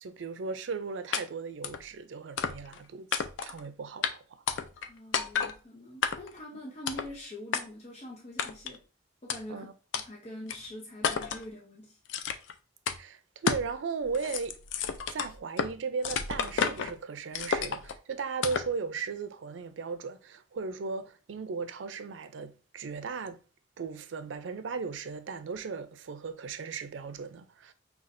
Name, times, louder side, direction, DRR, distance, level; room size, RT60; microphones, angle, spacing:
voice 1, 0.0-4.4 9.5-9.7 13.0-14.6 15.1-23.4 23.8-27.7, right 5 dB, 90° right, 0.4 m, -37 dB
sound 1, 1.1-1.2 1.6-1.8 2.4-2.8 3.1-3.6 4.0-4.1 4.5-4.9 5.1-5.5 6.0-6.4 6.9-7.1 7.5-7.6 8.4-8.8 9.3-9.4 9.9-10.0 10.5-10.6 11.0-11.4 12.1-12.5 12.9-13.0 13.5-13.7 14.0-15.7 16.0-16.9 17.3-17.9 18.4-18.7, left 6 dB, 85° left, 0.4 m, -31 dB
voice 2, 4.8-8.8 9.2-9.7 10.0-12.0, left 1 dB, 35° left, 0.8 m, -44 dB
5.7 x 2.3 x 2.5 m
head